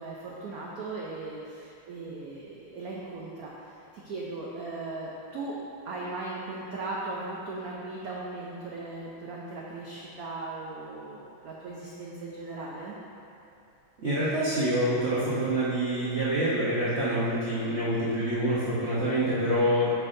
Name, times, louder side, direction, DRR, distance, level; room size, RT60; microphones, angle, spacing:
voice 1, 0.0-5.6 5.8-12.9, right 2 dB, 85° right, -4 dB, 0.8 m, -38 dB
voice 2, 14.0-19.9, right 1 dB, 55° right, -10 dB, 0.7 m, -26 dB
7.9 x 5.9 x 2.6 m, 2.7 s
omnidirectional pair, 2.3 m